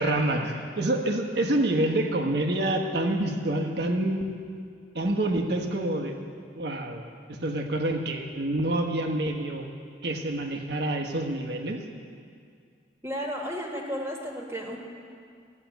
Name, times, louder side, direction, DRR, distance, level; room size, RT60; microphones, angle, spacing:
voice 1, 0.0-4.3 4.9-6.2 6.5-7.0 7.3-9.6 10.0-11.8, right 1 dB, 60° right, 2 dB, 1.2 m, -27 dB
voice 2, 13.0-14.8, equal, 15° right, -1 dB, 1.5 m, -33 dB
14.5 x 6.6 x 9.2 m, 2.2 s
head